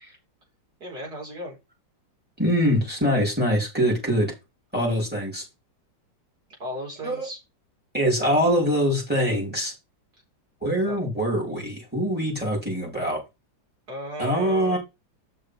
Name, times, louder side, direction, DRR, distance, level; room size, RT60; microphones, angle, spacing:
voice 1, 0.8-1.6 6.6-7.4 10.9-11.0 13.9-14.8, right 1 dB, 55° right, 4.7 m, -35 dB
voice 2, 2.4-4.3 4.7-5.4 7.0-7.2 7.9-9.7 10.6-13.2 14.2-14.8, equal, 5° right, 4.8 m, -23 dB
6.9 x 6.4 x 5.1 m
omnidirectional pair, 2.0 m